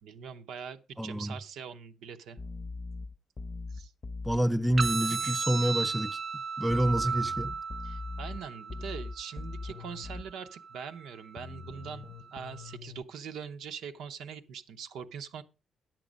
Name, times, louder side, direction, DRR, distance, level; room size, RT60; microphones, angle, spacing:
voice 1, 0.0-2.4 3.7-3.9 5.1-5.4 7.8-15.4, right 7 dB, 80° right, 0.8 m, -42 dB
voice 2, 1.0-1.3 4.2-6.2 6.6-7.5, right 1 dB, 5° right, 0.4 m, -28 dB
sound 1, 2.4-5.0 6.7-10.3 11.4-13.0, left 3 dB, 30° left, 0.7 m, -41 dB
sound 2, 4.8-12.8, right 5 dB, 45° right, 0.7 m, -36 dB
10.5 x 7.6 x 5.1 m
cardioid pair, 90°, 0 cm